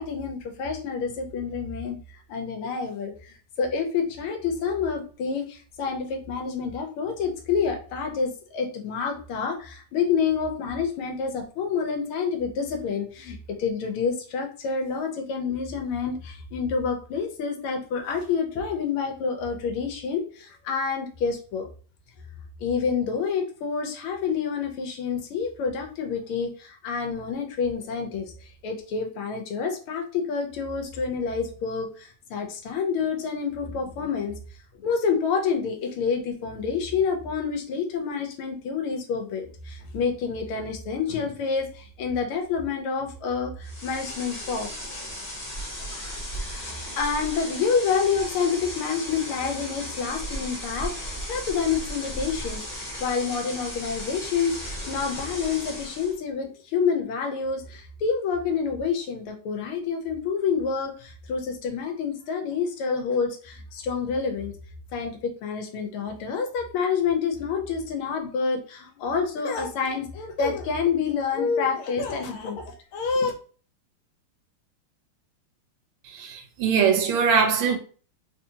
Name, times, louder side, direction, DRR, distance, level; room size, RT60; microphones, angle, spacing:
voice 1, 0.0-2.0 2.3-21.7 22.6-34.4 34.7-44.7 46.3-52.6 53.0-64.5 64.9-73.3, left 5 dB, 90° left, 1.7 m, -28 dB
sound 1, 43.6-56.2, equal, 70° left, 0.3 m, -36 dB
voice 2, 76.0-77.8, right 6 dB, 80° right, 1.6 m, -22 dB
3.9 x 2.8 x 2.7 m
omnidirectional pair, 2.3 m